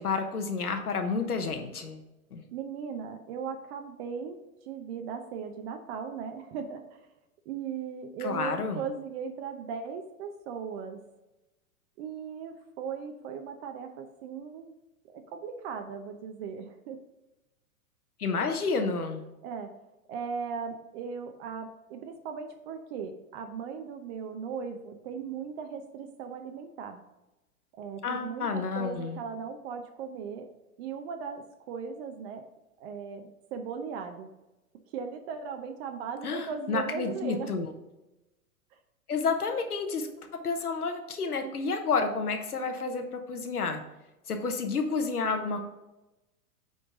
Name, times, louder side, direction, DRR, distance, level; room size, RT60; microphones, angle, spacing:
voice 1, 0.0-2.0 2.3-2.4 8.2-8.8 18.2-19.2 28.0-29.2 36.2-37.7 39.1-43.8 44.3-45.6, left 4 dB, 90° left, 6 dB, 1.1 m, -30 dB
voice 2, 2.5-7.0 7.5-11.0 12.0-14.7 15.1-17.0 19.4-19.7 20.1-27.0 27.7-30.5 30.8-32.5 32.8-34.3 34.9-37.5, right 6 dB, 45° right, 5 dB, 0.8 m, -38 dB
9.2 x 4.0 x 3.6 m, 1.0 s
hypercardioid pair, 105°, 44 cm